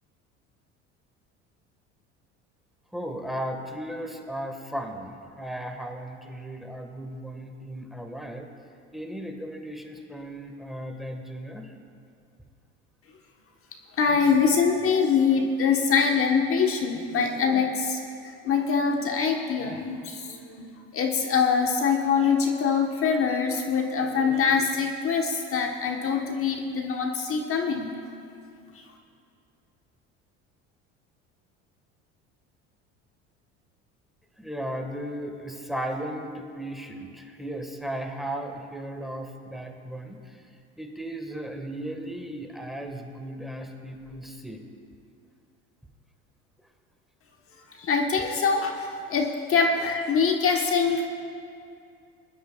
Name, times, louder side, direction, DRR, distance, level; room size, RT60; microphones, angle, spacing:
voice 1, 2.9-8.5 8.9-11.7 34.4-40.4 40.8-44.6, right 1 dB, ahead, 4 dB, 1.5 m, -36 dB
voice 2, 14.0-18.0 18.4-27.9 47.8-51.0, left 5 dB, 40° left, 3 dB, 1.2 m, -24 dB
21.5 x 12.0 x 2.3 m, 2.5 s
hypercardioid pair, 80°, 33 cm